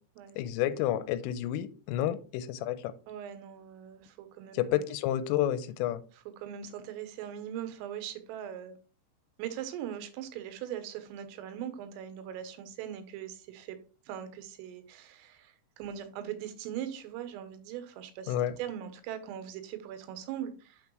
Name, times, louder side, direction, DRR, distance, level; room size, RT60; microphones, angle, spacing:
voice 1, 0.4-2.9 4.5-6.0 18.3-18.5, left 12 dB, 85° left, 3.1 m, -30 dB
voice 2, 3.1-4.8 6.4-8.8 9.4-13.8 14.1-20.8, right 10 dB, 85° right, 3.6 m, -40 dB
8.4 x 6.8 x 3.1 m
omnidirectional pair, 5.8 m